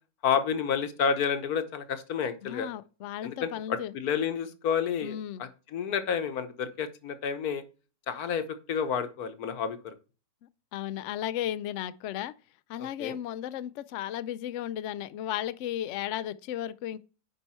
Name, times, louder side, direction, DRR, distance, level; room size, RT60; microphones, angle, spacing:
voice 1, 0.2-2.7 3.2-7.6 8.1-9.9 12.8-13.2, left 7 dB, 85° left, 1.5 m, -30 dB
voice 2, 2.4-3.9 5.0-5.4 10.7-12.3 12.7-17.0, left 11 dB, 65° left, 0.8 m, -34 dB
9.7 x 4.6 x 4.3 m
omnidirectional pair, 1.6 m